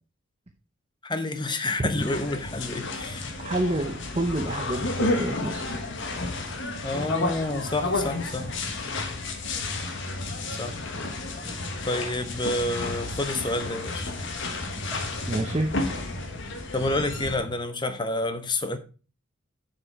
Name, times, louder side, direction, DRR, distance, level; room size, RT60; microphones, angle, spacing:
voice 1, 1.0-3.3 6.8-8.6 10.6-10.9 11.9-14.1 16.7-18.8, left 2 dB, 20° left, 0.8 m, -29 dB
sound 1, 2.0-17.4, left 2 dB, 55° left, 1.3 m, -32 dB
voice 2, 3.4-5.6 15.3-15.8, right 1 dB, 30° right, 0.7 m, -28 dB
Computer keyboard, 8.0-17.5, equal, 5° right, 3.1 m, -41 dB
7.0 x 7.0 x 4.6 m
head